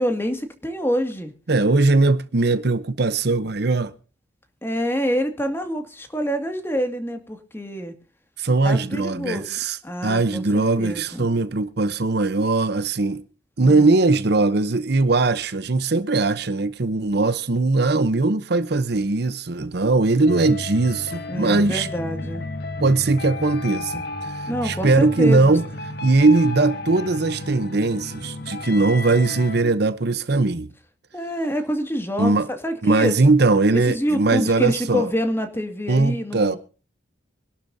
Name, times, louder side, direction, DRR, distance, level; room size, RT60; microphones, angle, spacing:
voice 1, 0.0-1.3 4.6-8.0 8.6-11.3 13.6-14.0 21.3-22.4 24.5-25.6 31.1-33.1 33.7-36.6, equal, 10° left, 2.1 m, -26 dB
voice 2, 1.5-3.9 8.4-9.8 10.0-13.2 13.6-21.9 22.8-25.6 26.0-30.7 32.2-32.5 32.8-35.1 35.9-36.6, right 3 dB, 60° right, 0.8 m, -20 dB
sound 1, 20.3-29.6, left 2 dB, 55° left, 1.4 m, -33 dB
25.0 x 12.0 x 2.7 m
head